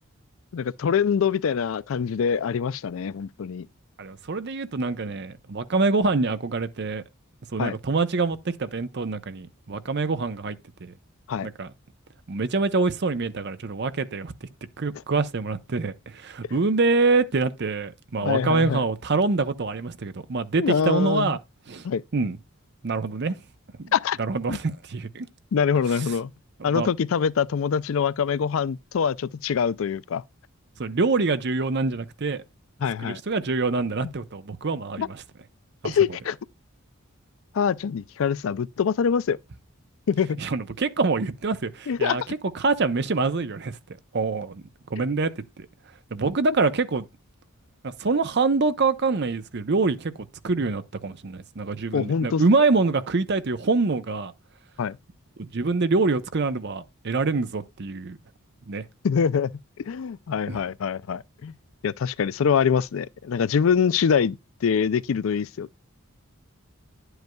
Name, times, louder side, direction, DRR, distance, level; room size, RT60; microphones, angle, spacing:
voice 1, 0.5-3.7 7.6-7.8 11.3-11.5 18.2-18.9 20.6-21.3 21.8-22.0 23.9-24.2 24.5-24.6 25.5-26.3 26.6-30.2 32.8-33.2 35.0-35.1 35.8-36.4 37.5-39.4 40.1-40.4 41.9-42.2 51.9-52.4 54.8-55.0 59.0-59.5 59.8-61.5 61.8-65.7, left 6 dB, 65° left, 0.4 m, -24 dB
voice 2, 4.0-7.0 7.5-10.9 11.4-11.7 12.3-14.5 14.8-21.4 21.7-21.9 22.1-22.4 22.8-23.4 23.8-23.9 24.2-25.3 26.0-26.1 26.6-26.9 30.8-32.4 33.0-35.2 35.8-36.0 40.4-43.8 44.1-44.6 44.9-45.7 46.1-47.1 48.0-54.3 55.4-58.2 58.7-58.9 60.5-60.6, right 3 dB, 50° right, 0.7 m, -25 dB
10.5 x 7.9 x 2.3 m
head